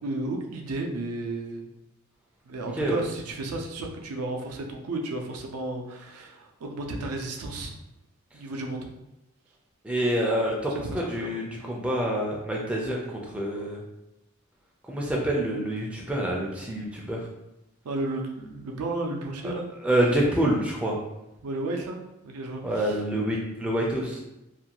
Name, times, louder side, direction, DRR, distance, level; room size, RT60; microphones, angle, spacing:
voice 1, 0.0-1.7 2.4-7.7 8.3-8.9 10.7-11.3 17.8-19.7 21.4-22.0 22.2-23.0, right 2 dB, 85° right, 2 dB, 0.4 m, -33 dB
voice 2, 9.8-13.8 14.9-17.2 19.4-19.5 19.8-21.0 22.6-24.2, right 1 dB, 5° right, -3 dB, 0.3 m, -27 dB
2.5 x 2.2 x 2.8 m, 0.92 s
head